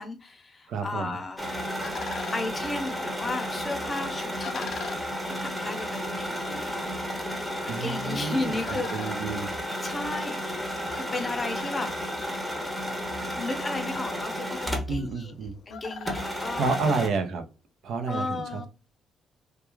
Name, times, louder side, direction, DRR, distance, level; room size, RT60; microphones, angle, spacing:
voice 1, 0.0-1.5 2.3-4.6 5.3-6.9 7.6-8.9 9.8-11.9 13.4-16.7 18.1-18.7, left 2 dB, 30° left, 5 dB, 0.7 m, -34 dB
voice 2, 0.7-1.2 7.7-9.5 14.9-15.6 16.6-17.4 17.8-18.7, right 4 dB, 75° right, 7 dB, 0.5 m, -30 dB
sound 1, 1.1-17.4, left 6 dB, 70° left, 0.4 m, -46 dB
sound 2, 1.4-15.1 15.4-15.5 16.0-17.1, equal, 5° right, 0.7 m, -32 dB
2.3 x 2.2 x 3.0 m, 0.29 s
cardioid pair, 90°, 0 cm